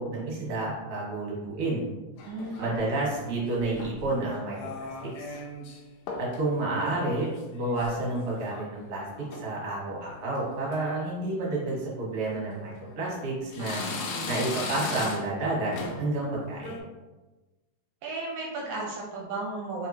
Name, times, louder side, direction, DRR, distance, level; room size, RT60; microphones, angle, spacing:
voice 1, 0.0-1.8 2.6-5.4 6.2-9.0 9.4-13.8 14.3-16.8, right 2 dB, 65° right, -5 dB, 2.3 m, -30 dB
sound 1, 2.2-2.9 3.6-4.1 4.5-5.8 6.1-6.4 6.7-8.7 9.0-9.5 10.0-10.4 10.7-10.8 11.7-11.9 12.5-13.2 13.5-15.4 15.7-16.1 16.5-16.8, left 3 dB, 85° left, 2.0 m, -38 dB
voice 2, 2.2-3.0 13.6-14.3 18.0-19.9, right 3 dB, 80° right, -3 dB, 2.0 m, -35 dB
4.6 x 3.4 x 2.8 m, 1.2 s
omnidirectional pair, 3.3 m